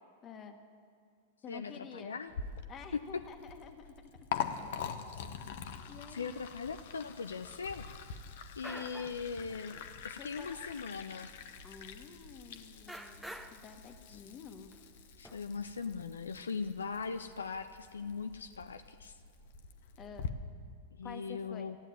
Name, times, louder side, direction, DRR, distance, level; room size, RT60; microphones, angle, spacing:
voice 1, 0.2-0.6 1.4-2.2 2.7-3.9 5.8-6.4 10.2-10.6 11.6-14.7 20.0-20.3 21.0-21.7, left 6 dB, 30° left, 6 dB, 1.5 m, -50 dB
voice 2, 1.5-2.3 2.9-3.0 5.1-5.3 6.1-8.2 8.6-9.8 10.0-11.4 14.1-14.2 15.2-19.2 21.0-21.8, left 5 dB, 80° left, 9 dB, 0.5 m, -40 dB
Liquid, 2.3-20.3, left 7 dB, 60° left, 1.0 m, -45 dB
sound 1, 8.2-8.3 8.6-9.2 9.5-9.9 10.6-10.7 11.1-11.2 12.4-12.6 12.9-13.7 14.7-14.8 15.2-16.0, right 1 dB, ahead, 0.8 m, -48 dB
14.5 x 9.0 x 9.3 m, 2.2 s
figure-of-eight pair, 95°, 0 cm